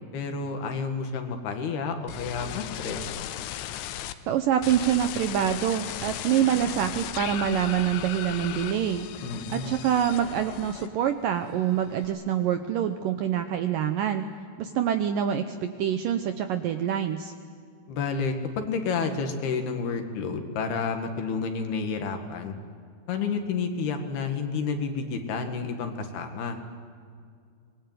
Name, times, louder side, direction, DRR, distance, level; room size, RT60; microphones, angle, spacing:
voice 1, 0.1-3.0 9.2-9.7 17.9-22.5 23.1-26.6, left 5 dB, 70° left, 5 dB, 3.7 m, -30 dB
sound 1, 2.1-4.1 4.6-11.2 11.5-12.1, left 12 dB, 90° left, 3.0 m, -36 dB
voice 2, 4.3-9.1 9.5-14.3 14.6-17.3, right 10 dB, 75° right, 7 dB, 2.0 m, -26 dB
24.5 x 20.5 x 9.3 m, 2.3 s
omnidirectional pair, 4.9 m